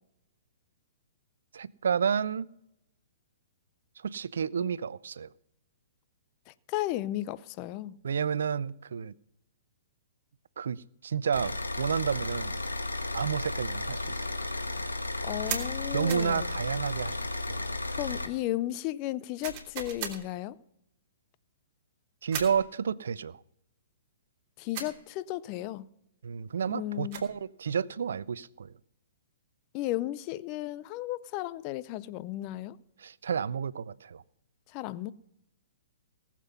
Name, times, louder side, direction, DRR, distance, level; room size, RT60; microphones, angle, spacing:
voice 1, 1.5-2.5 4.0-5.3 8.0-9.1 10.6-12.6 13.1-14.3 15.9-17.2 17.5-17.8 22.2-23.4 26.2-28.7 33.0-34.2, right 7 dB, 60° right, 0.4 m, -31 dB
voice 2, 6.5-7.9 15.2-16.5 17.9-20.6 24.6-25.9 26.7-27.2 29.7-32.8 34.7-35.1, left 15 dB, 30° left, 0.5 m, -34 dB
sound 1, 11.3-18.3, left 2 dB, 80° left, 1.4 m, -34 dB
sound 2, 15.5-15.7 16.1-16.3 19.4-20.2 22.3-22.6 24.7-25.0 26.9-27.4, right 8 dB, 35° right, 3.1 m, -36 dB
18.5 x 7.4 x 5.6 m
figure-of-eight pair, 115°, 0 cm